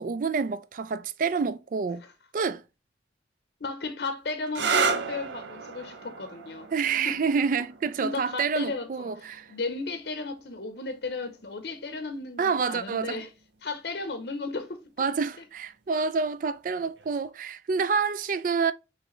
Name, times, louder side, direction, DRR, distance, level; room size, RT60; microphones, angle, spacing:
voice 1, 0.0-2.0 2.3-2.6 6.7-9.5 12.4-13.2 15.0-18.7, right 5 dB, 45° right, 0.3 m, -28 dB
voice 2, 3.6-6.7 7.0-7.2 8.0-13.3 13.6-15.1, left 3 dB, 65° left, 0.7 m, -35 dB
sound 1, 4.5-11.9 12.9-13.4 17.0-17.3, right 5 dB, 85° right, 0.7 m, -34 dB
5.7 x 3.1 x 3.0 m
head